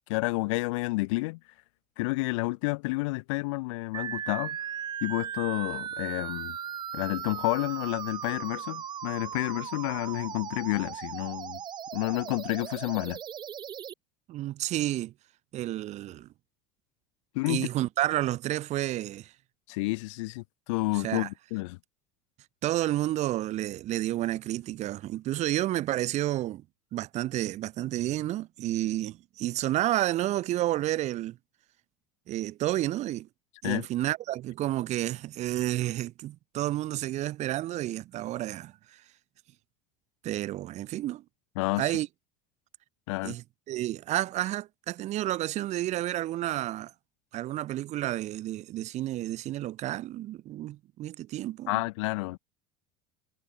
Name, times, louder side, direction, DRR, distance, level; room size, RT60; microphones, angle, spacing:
voice 1, 0.1-1.4 2.0-4.6 5.0-6.6 6.9-11.6 11.9-13.2 17.3-17.7 19.7-21.8 33.6-33.9 41.6-41.9 43.1-43.3 51.7-52.4, left 24 dB, 85° left, 0.9 m, -30 dB
sound 1, 3.9-13.9, right 9 dB, 30° right, 0.8 m, -37 dB
voice 2, 14.3-15.1 15.5-16.3 17.5-19.3 20.9-21.3 22.6-26.6 26.9-31.4 32.3-33.3 33.6-39.0 40.2-41.2 41.8-42.1 43.2-46.9 47.3-51.8, right 14 dB, 50° right, 2.9 m, -30 dB
supercardioid pair, 130°, 15 cm